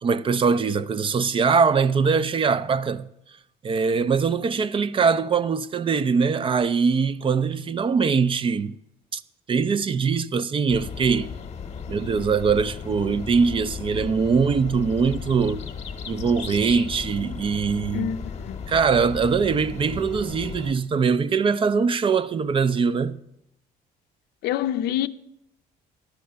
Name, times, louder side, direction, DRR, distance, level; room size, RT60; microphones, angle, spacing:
voice 1, 0.0-3.1 3.6-8.7 9.1-9.2 9.5-11.3 11.9-15.6 16.1-18.1 18.7-23.2, right 5 dB, 30° right, 0.4 m, -22 dB
sound 1, 10.7-20.7, left 6 dB, 40° left, 1.0 m, -35 dB
voice 2, 17.9-18.6 24.4-25.1, left 11 dB, 75° left, 0.5 m, -27 dB
11.5 x 6.4 x 6.8 m
cardioid pair, 110°, 17 cm